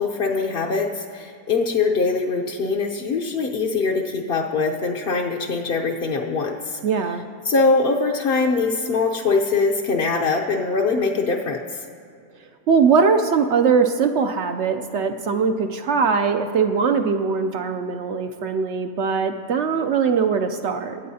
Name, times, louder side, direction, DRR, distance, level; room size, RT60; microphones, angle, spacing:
voice 1, 0.0-6.8 7.4-11.9, left 4 dB, 55° left, 0 dB, 0.7 m, -22 dB
voice 2, 6.8-7.2 12.7-21.0, right 5 dB, 70° right, 7 dB, 0.6 m, -21 dB
24.5 x 8.4 x 2.8 m, 2.5 s
omnidirectional pair, 1.7 m